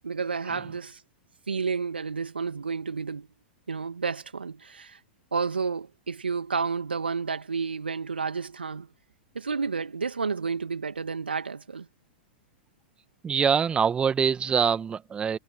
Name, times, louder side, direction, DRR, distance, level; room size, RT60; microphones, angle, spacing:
voice 1, 0.0-1.0 1.5-3.3 3.7-5.0 5.3-8.9 9.3-11.9, right 5 dB, 80° right, 2.5 m, -31 dB
voice 2, 13.2-15.4, right 7 dB, 20° right, 1.6 m, -24 dB
figure-of-eight pair, 100°, 5 cm